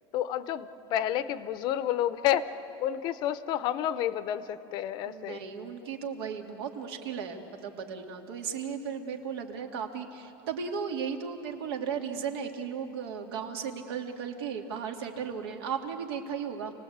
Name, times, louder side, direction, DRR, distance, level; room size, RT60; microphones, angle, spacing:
voice 1, 0.1-2.5 2.8-5.4, left 11 dB, 35° left, 14 dB, 0.6 m, -30 dB
voice 2, 5.1-16.7, right 6 dB, 85° right, 4 dB, 2.5 m, -35 dB
28.5 x 18.5 x 8.7 m, 3.0 s
supercardioid pair, 175°, 13 cm